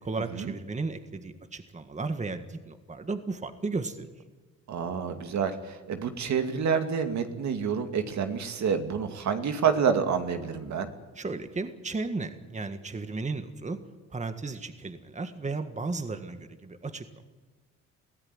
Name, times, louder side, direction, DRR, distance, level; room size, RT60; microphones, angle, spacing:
voice 1, 0.0-4.1 11.2-13.8 14.1-17.2, right 3 dB, 25° right, 9 dB, 1.7 m, -34 dB
voice 2, 4.7-10.9, right 6 dB, 65° right, 6 dB, 2.5 m, -28 dB
22.5 x 16.0 x 9.8 m, 1.3 s
cardioid pair, 90°, 30 cm